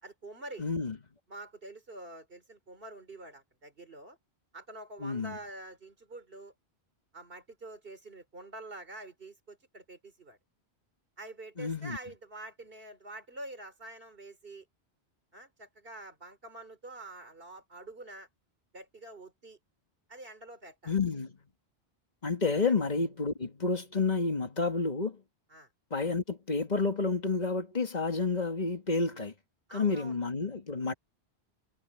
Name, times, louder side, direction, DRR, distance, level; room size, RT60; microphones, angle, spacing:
voice 1, 0.0-0.6 1.3-4.2 4.5-6.5 7.1-10.4 11.2-14.7 15.3-18.3 18.7-19.6 20.1-20.9 22.6-22.8 25.5-25.7 29.7-30.2, right 2 dB, 60° right, 3.9 m, -46 dB
voice 2, 0.6-1.0 5.0-5.4 11.6-12.0 20.9-21.4 22.2-25.2 25.9-29.3 29.7-30.9, left 4 dB, 40° left, 2.0 m, -30 dB
omnidirectional pair, 1.1 m